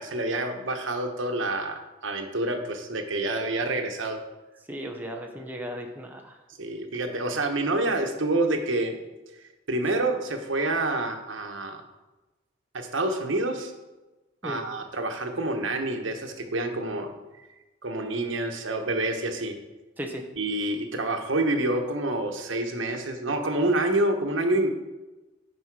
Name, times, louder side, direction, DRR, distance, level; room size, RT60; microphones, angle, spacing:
voice 1, 0.0-4.2 6.6-8.9 9.7-11.8 12.7-13.7 14.4-17.1 17.8-19.6 20.4-24.7, right 2 dB, 80° right, 5 dB, 1.1 m, -27 dB
voice 2, 4.7-6.4 14.4-14.6 20.0-20.3, equal, 10° right, 2 dB, 0.8 m, -36 dB
9.7 x 5.5 x 4.7 m, 1.1 s
head